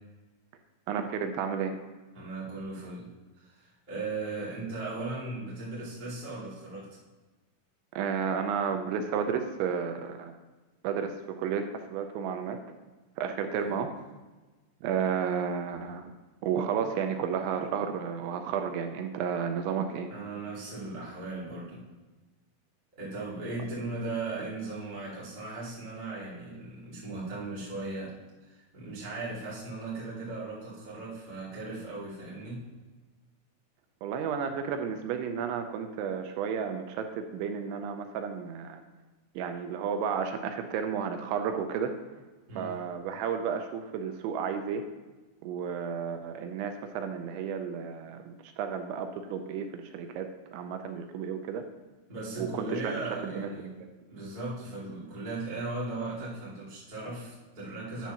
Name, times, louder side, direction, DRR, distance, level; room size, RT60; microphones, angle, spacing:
voice 1, 0.9-1.8 8.0-10.3 10.8-12.6 13.2-13.9 14.8-16.1 16.4-20.1 34.0-38.8 39.4-41.9 42.6-44.8 45.4-51.6 52.4-53.5, right 7 dB, 80° right, 6 dB, 2.9 m, -32 dB
voice 2, 2.1-6.9 13.6-13.8 20.1-21.8 23.0-32.6 42.5-42.7 52.1-53.7 54.1-58.1, right 2 dB, 20° right, -7 dB, 1.1 m, -37 dB
10.0 x 4.5 x 5.7 m, 1.2 s
omnidirectional pair, 5.5 m